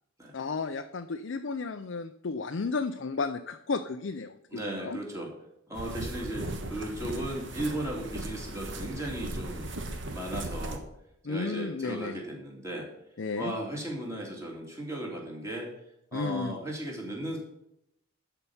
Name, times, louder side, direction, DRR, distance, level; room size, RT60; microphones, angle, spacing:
voice 1, 0.3-5.0 11.2-12.2 13.2-13.5 16.1-16.6, left 4 dB, 60° left, 7 dB, 0.5 m, -33 dB
voice 2, 4.5-5.3 5.7-9.7 10.1-10.8 11.3-12.9 13.4-15.7 16.1-17.4, right 1 dB, 15° right, -1 dB, 2.4 m, -36 dB
sound 1, 5.7-10.8, right 1 dB, 55° right, 1.3 m, -37 dB
12.5 x 4.7 x 7.0 m, 0.79 s
head